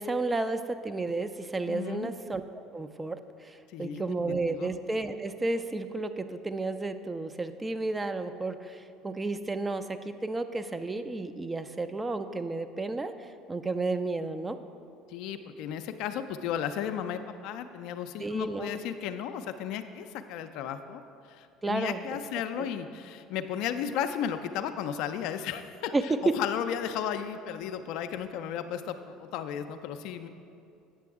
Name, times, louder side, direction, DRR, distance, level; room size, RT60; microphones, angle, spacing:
voice 1, 0.0-2.4 2.7-14.6 18.2-18.8 21.6-22.1 22.6-22.7 25.9-26.3, right 3 dB, 20° right, 9 dB, 0.4 m, -32 dB
voice 2, 1.7-2.1 3.7-4.7 15.1-21.0 21.3-30.3, left 9 dB, 65° left, 9 dB, 0.4 m, -34 dB
8.4 x 6.8 x 3.6 m, 2.5 s
hypercardioid pair, 70°, 0 cm